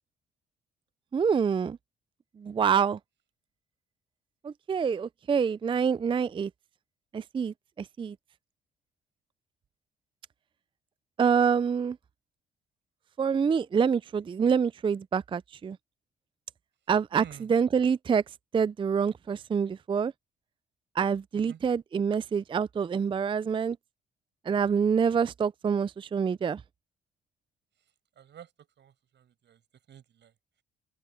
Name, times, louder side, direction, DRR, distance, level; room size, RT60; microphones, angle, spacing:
voice 1, 1.1-1.8 2.4-3.0 4.4-6.5 7.1-7.5 8.0-8.1 11.2-12.0 13.2-15.8 16.9-17.2 17.5-18.2 18.5-20.1 21.0-23.8 24.5-26.6, right 6 dB, 25° right, 0.4 m, -26 dB
voice 2, 17.1-17.5 21.3-21.6 28.2-29.6 29.9-30.3, right 9 dB, 65° right, 6.0 m, -50 dB
open air
cardioid pair, 90°, 20 cm